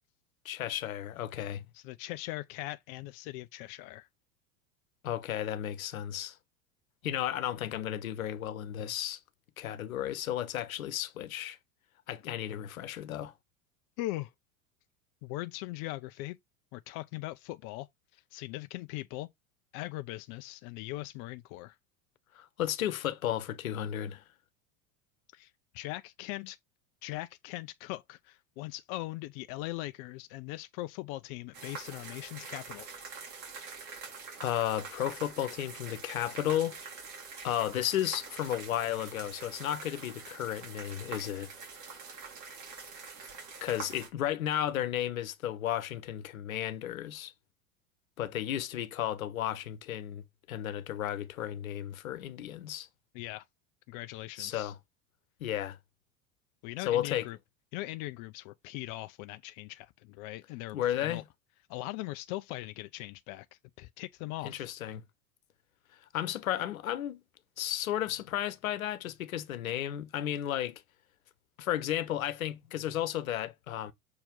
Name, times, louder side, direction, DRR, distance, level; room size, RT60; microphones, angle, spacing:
voice 1, 0.4-1.6 5.0-6.4 7.0-9.2 9.6-11.6 12.1-13.3 22.3-24.2 34.4-36.8 37.4-41.5 43.6-47.3 48.2-50.2 50.5-52.9 54.4-54.8 55.4-55.8 56.8-57.3 60.7-61.2 64.4-65.0 66.1-67.2 67.6-70.8 71.6-73.9, left 11 dB, 80° left, 1.1 m, -33 dB
voice 2, 1.7-4.1 14.0-14.3 15.2-16.4 16.7-19.3 19.7-21.8 25.3-26.6 27.0-32.9 53.1-53.4 53.9-54.7 56.6-57.4 57.7-61.2 61.7-64.7, left 18 dB, 50° left, 0.7 m, -40 dB
sound 1, 31.5-44.1, right 5 dB, 45° right, 3.8 m, -45 dB
6.6 x 4.5 x 3.7 m
hypercardioid pair, 90°, 41 cm